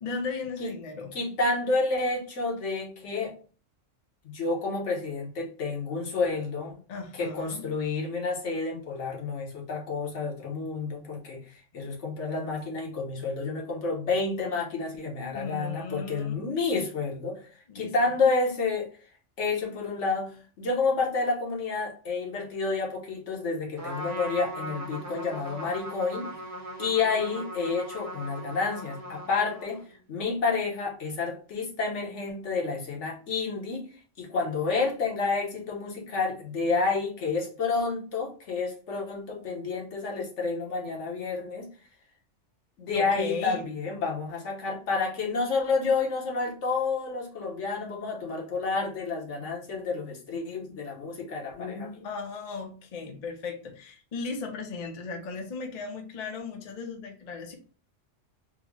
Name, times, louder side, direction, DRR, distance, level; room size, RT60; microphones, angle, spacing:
voice 1, 0.0-1.1 6.9-7.7 15.3-16.3 17.7-17.9 42.9-43.6 52.0-57.5, left 4 dB, 45° left, 3 dB, 0.6 m, -36 dB
voice 2, 1.1-3.3 4.2-6.8 7.1-11.4 11.7-17.5 17.7-18.9 19.4-20.3 20.6-26.3 26.8-29.8 30.1-33.9 34.2-41.7 42.8-52.1, left 4 dB, 70° left, -1 dB, 1.2 m, -29 dB
Trumpet, 23.8-29.9, right 1 dB, 15° right, 0.8 m, -39 dB
3.6 x 2.1 x 3.5 m, 0.39 s
omnidirectional pair, 1.3 m